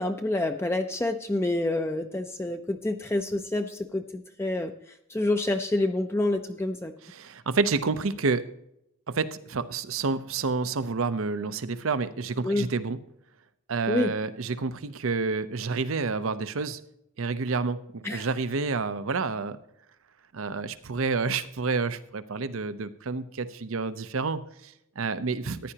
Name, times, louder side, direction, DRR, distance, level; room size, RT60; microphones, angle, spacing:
voice 1, 0.0-4.7 5.1-6.9 12.4-12.7 13.9-14.1 18.0-18.3, left 2 dB, 10° left, 6 dB, 0.4 m, -27 dB
voice 2, 7.0-8.4 9.1-13.0 13.7-16.8 17.2-19.6 20.3-25.7, right 4 dB, 75° right, 13 dB, 0.7 m, -29 dB
14.5 x 10.0 x 2.9 m, 0.79 s
head